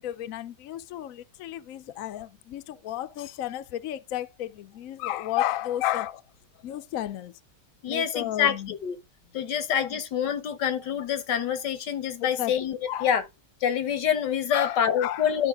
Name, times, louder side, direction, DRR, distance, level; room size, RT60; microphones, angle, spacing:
voice 1, 0.0-6.2 6.6-7.3 7.9-8.7 9.9-10.0 12.4-12.5 12.9-13.1 14.5-15.3, left 13 dB, 65° left, 1.0 m, -32 dB
voice 2, 7.8-9.0 9.3-13.2 13.6-15.5, left 8 dB, 85° left, 1.7 m, -26 dB
11.5 x 5.3 x 3.6 m
omnidirectional pair, 1.8 m